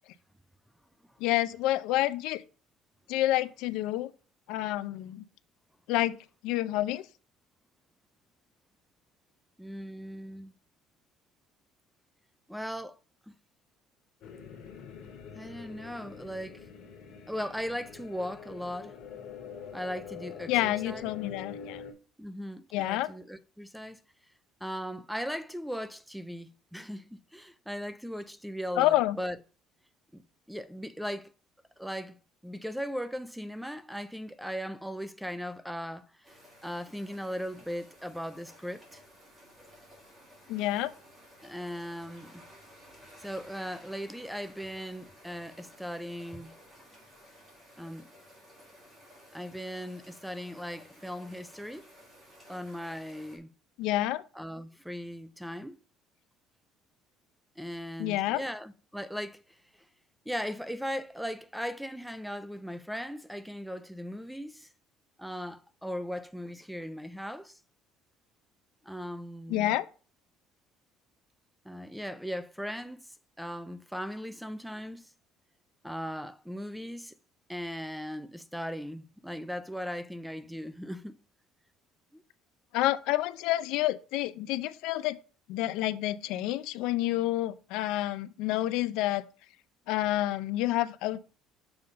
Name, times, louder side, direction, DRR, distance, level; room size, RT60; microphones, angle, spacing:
voice 1, 1.2-2.4 3.1-4.1 4.5-5.2 5.9-6.2 6.4-7.1 20.5-21.8 22.7-23.1 28.8-29.2 40.5-40.9 53.8-54.2 58.0-58.4 69.5-69.9 82.7-85.2 85.5-89.3 89.9-91.2, left 15 dB, 70° left, 0.5 m, -28 dB
voice 2, 9.6-10.5 12.5-13.0 13.3-13.4 15.3-16.7 17.3-19.0 19.7-21.1 22.2-24.0 24.6-29.4 30.1-31.3 31.8-32.2 32.4-39.0 41.4-42.4 43.2-46.5 47.8-48.1 49.3-51.9 52.5-53.5 54.3-55.8 57.6-59.8 60.3-64.7 65.2-67.6 68.8-69.7 71.6-73.1 73.4-75.1 75.8-77.2 77.5-81.2 82.1-82.2, equal, ahead, 0.4 m, -38 dB
sound 1, 14.2-21.9, left 6 dB, 50° left, 2.4 m, -45 dB
sound 2, 36.2-53.4, equal, 15° right, 2.7 m, -55 dB
7.0 x 4.0 x 5.2 m
cardioid pair, 175°, 0 cm